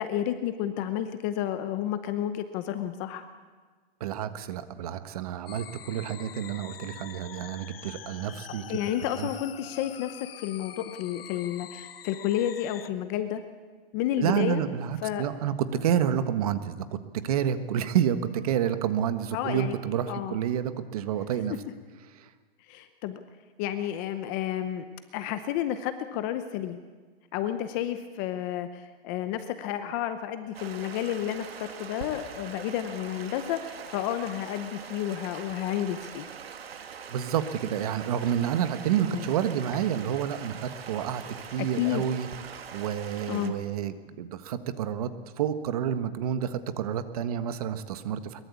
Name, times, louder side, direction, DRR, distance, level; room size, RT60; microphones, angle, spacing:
voice 1, 0.0-3.3 8.7-13.4 13.9-14.6 15.0-15.3 19.3-19.7 20.1-20.4 22.7-23.2 23.6-24.9 25.1-26.8 27.3-36.3 39.1-39.2 41.6-42.0 43.3-43.5, left 11 dB, 20° left, 10 dB, 0.7 m, -31 dB
voice 2, 4.0-8.8 9.2-9.3 14.2-16.9 17.1-21.5 22.2-22.3 37.1-41.2 41.5-48.4, right 9 dB, 35° right, 11 dB, 1.5 m, -29 dB
sound 1, 5.5-12.9, left 10 dB, 65° left, 1.2 m, -45 dB
Stream, 30.5-43.5, right 7 dB, 75° right, 2.7 m, -43 dB
22.5 x 22.0 x 8.4 m, 1.4 s
hypercardioid pair, 165°, 31 cm